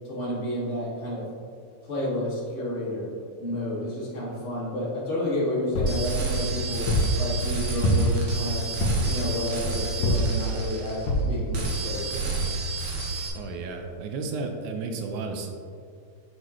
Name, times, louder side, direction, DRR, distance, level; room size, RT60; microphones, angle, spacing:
voice 1, 0.0-1.2 1.8-3.1 3.4-6.9 7.2-8.6 9.1-12.4, left 1 dB, 30° left, -7 dB, 1.8 m, -30 dB
sound 1, 5.8-6.1 6.9-7.2 7.8-8.2 8.8-9.1 10.0-10.4 11.1-11.4 11.9-12.0 12.3-12.4, left 1 dB, 70° left, 2.4 m, -23 dB
sound 2, 5.9-11.2 11.5-13.3, right 3 dB, 60° right, 2.2 m, -30 dB
voice 2, 13.3-15.5, right 4 dB, 75° right, 4 dB, 2.0 m, -33 dB
9.8 x 5.3 x 3.1 m, 2.3 s
omnidirectional pair, 3.6 m